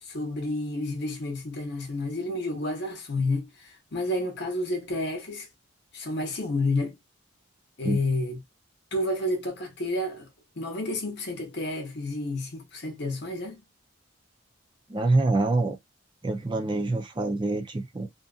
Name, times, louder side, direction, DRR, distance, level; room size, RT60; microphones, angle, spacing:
voice 1, 0.0-5.5 5.9-7.0 7.8-8.4 8.9-10.3 10.6-13.6, left 2 dB, 55° left, 0.8 m, -30 dB
voice 2, 14.9-15.8 16.2-18.1, right 2 dB, 25° right, 0.4 m, -25 dB
2.6 x 2.5 x 2.3 m
head